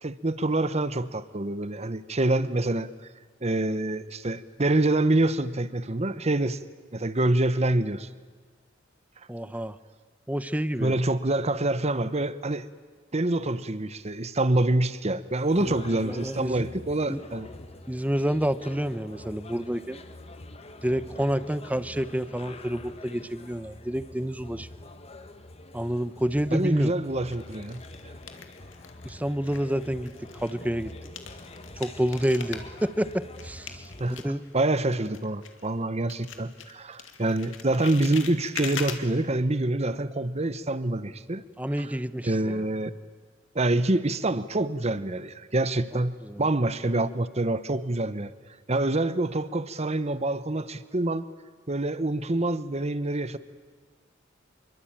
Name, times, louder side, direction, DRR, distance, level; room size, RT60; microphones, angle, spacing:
voice 1, 0.0-2.9 3.4-6.6 6.9-8.1 10.8-12.7 13.1-17.5 26.5-28.1 34.0-41.4 42.2-42.9 43.5-48.3 48.7-51.2 51.7-53.4, right 2 dB, 35° right, 14 dB, 1.0 m, -26 dB
voice 2, 9.3-9.8 10.3-10.9 15.6-16.7 17.1-17.2 17.9-20.0 20.8-24.7 25.7-26.9 29.0-30.9 31.8-34.4 41.6-42.6 46.2-46.5, equal, 10° right, 14 dB, 0.8 m, -29 dB
sound 1, 15.3-34.2, left 2 dB, 30° left, 1.5 m, -45 dB
sound 2, 26.1-26.7 27.3-29.2 29.4-35.8 36.1-39.0, left 7 dB, 80° left, 2.4 m, -41 dB
27.0 x 23.5 x 9.0 m, 1.5 s
head